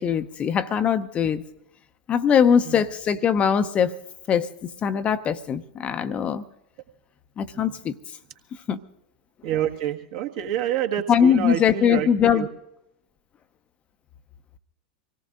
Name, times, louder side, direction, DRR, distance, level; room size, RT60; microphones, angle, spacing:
voice 1, 0.0-1.4 2.1-3.9 4.3-6.4 7.4-7.9 8.7-8.8 11.1-12.5, left 8 dB, 25° left, 10 dB, 0.7 m, -21 dB
voice 2, 9.4-12.5, right 10 dB, 50° right, 4 dB, 1.6 m, -27 dB
25.5 x 18.0 x 2.6 m, 0.80 s
figure-of-eight pair, 90°, 5 cm